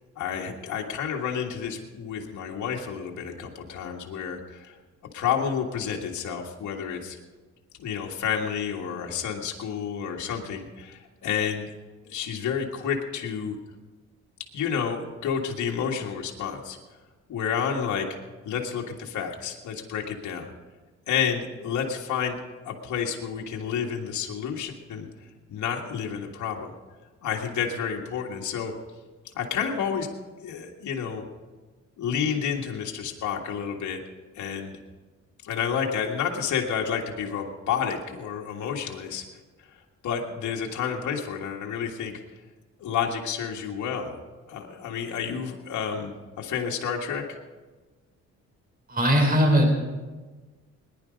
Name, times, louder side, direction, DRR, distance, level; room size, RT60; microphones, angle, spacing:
voice 1, 0.2-4.8 5.1-7.2 7.8-11.7 12.1-13.5 14.5-16.8 17.3-18.1 18.5-20.5 21.1-22.4 22.6-25.1 25.5-26.7 27.2-28.7 29.4-30.1 30.4-31.2 32.0-34.0 34.3-34.8 35.4-39.2 40.0-42.1 42.8-44.2 44.5-47.2, left 7 dB, 70° left, 0 dB, 1.8 m, -30 dB
voice 2, 48.9-49.8, equal, 30° right, 2 dB, 4.1 m, -20 dB
19.5 x 11.0 x 5.2 m, 1.3 s
cardioid pair, 90°, 30 cm